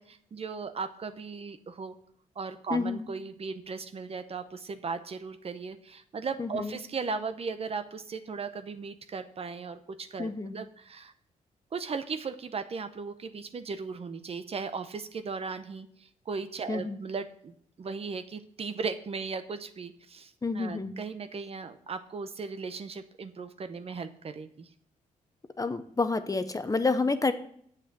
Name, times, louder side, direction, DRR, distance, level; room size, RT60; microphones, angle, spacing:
voice 1, 0.0-1.9 2.4-11.1 11.7-24.7, right 5 dB, 45° right, 10 dB, 0.9 m, -37 dB
voice 2, 2.7-3.1 6.4-6.8 10.2-10.5 16.7-17.0 20.4-20.9 25.6-27.3, left 3 dB, 25° left, 10 dB, 0.8 m, -29 dB
7.6 x 6.5 x 7.5 m, 0.64 s
cardioid pair, 75°, 14 cm